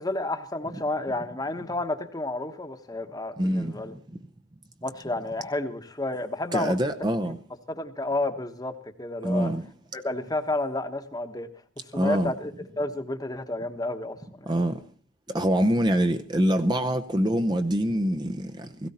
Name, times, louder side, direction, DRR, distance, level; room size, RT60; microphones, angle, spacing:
voice 1, 0.0-3.9 4.8-6.7 7.2-7.3 7.8-9.5 9.9-11.5 11.9-14.5, left 2 dB, 20° left, 1.2 m, -31 dB
voice 2, 3.4-3.7 6.5-7.4 9.2-9.7 11.9-12.3 14.5-14.7 15.3-18.9, equal, 25° right, 0.7 m, -25 dB
17.0 x 16.5 x 4.3 m
head